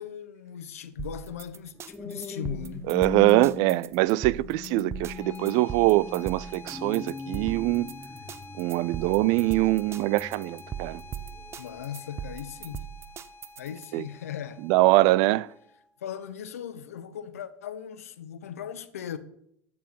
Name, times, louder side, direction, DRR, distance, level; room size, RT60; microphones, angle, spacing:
voice 1, 0.0-2.9 11.6-12.9 13.6-14.7 16.0-19.2, left 9 dB, 85° left, 1.0 m, -38 dB
sound 1, 1.0-13.9, right 10 dB, 35° right, 0.7 m, -39 dB
sound 2, 1.4-12.0 12.6-12.8, left 5 dB, 15° left, 0.9 m, -41 dB
voice 2, 2.9-7.9 8.6-11.0 13.9-14.0 14.7-15.5, right 18 dB, 60° right, 0.4 m, -23 dB
sound 3, 4.9-15.9, left 2 dB, 35° left, 2.2 m, -48 dB
14.0 x 4.7 x 7.6 m
hypercardioid pair, 85°, 8 cm